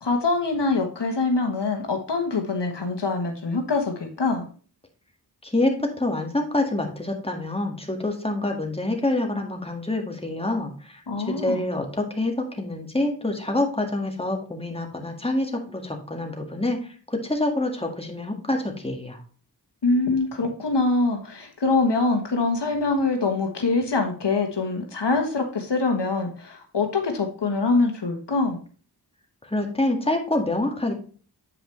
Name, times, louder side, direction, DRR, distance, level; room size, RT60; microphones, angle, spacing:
voice 1, 0.0-4.5 11.1-11.6 19.8-28.6, left 3 dB, 80° left, 4 dB, 1.3 m, -24 dB
voice 2, 5.4-11.0 11.3-19.2 29.5-30.9, left 2 dB, 15° left, 2 dB, 1.8 m, -26 dB
8.3 x 5.0 x 3.2 m, 0.41 s
wide cardioid pair, 40°, 41 cm